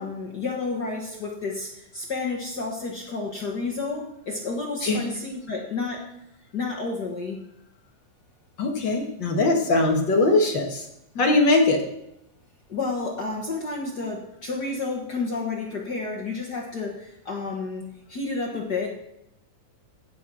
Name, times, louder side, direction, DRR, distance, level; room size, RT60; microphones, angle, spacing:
voice 1, 0.0-6.1 6.5-7.4 11.1-11.3 12.7-18.9, left 3 dB, 75° left, 0 dB, 0.9 m, -31 dB
voice 2, 8.6-10.8 11.2-11.8, left 2 dB, 50° left, 2 dB, 1.5 m, -21 dB
16.5 x 5.9 x 6.1 m, 0.80 s
omnidirectional pair, 4.0 m